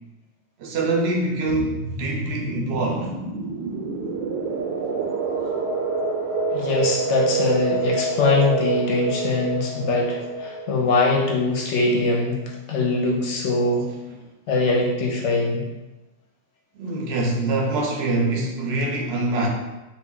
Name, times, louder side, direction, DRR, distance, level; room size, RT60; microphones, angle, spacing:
voice 1, 0.6-3.1 14.1-14.2 16.8-19.5, right 2 dB, 65° right, 0 dB, 0.7 m, -24 dB
sound 1, 1.5-12.0, right 3 dB, 90° right, 1.0 m, -27 dB
voice 2, 6.5-12.4 12.7-13.9 14.5-15.6, left 3 dB, 70° left, -2 dB, 0.8 m, -22 dB
2.4 x 2.1 x 3.6 m, 1.1 s
omnidirectional pair, 1.3 m